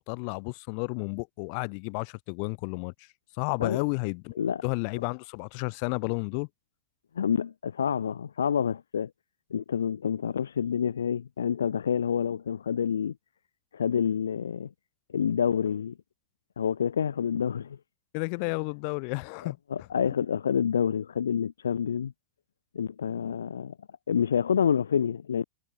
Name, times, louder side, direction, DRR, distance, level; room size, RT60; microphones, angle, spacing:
voice 1, 0.0-2.9 3.4-6.5 18.1-19.6, left 40 dB or more, 45° left, 2.4 m, -32 dB
voice 2, 7.1-9.1 9.5-13.1 13.7-14.7 15.1-16.0 16.6-17.8 19.4-22.1 22.7-23.8 24.1-25.4, left 7 dB, 70° left, 0.5 m, -28 dB
figure-of-eight pair, 90°, 0 cm